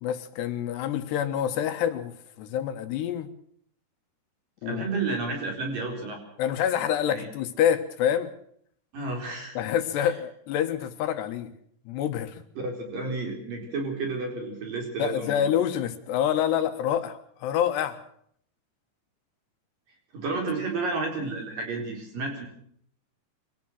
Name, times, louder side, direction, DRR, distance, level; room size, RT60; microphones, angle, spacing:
voice 1, 0.0-3.3 4.6-4.9 6.4-8.3 9.6-11.5 11.9-12.4 15.0-18.0, left 9 dB, 80° left, 9 dB, 3.5 m, -27 dB
voice 2, 4.7-6.2 7.0-7.3 8.9-9.6 12.6-15.4 20.1-22.5, right 3 dB, 55° right, 2 dB, 5.5 m, -31 dB
24.5 x 18.0 x 6.3 m, 0.65 s
omnidirectional pair, 4.9 m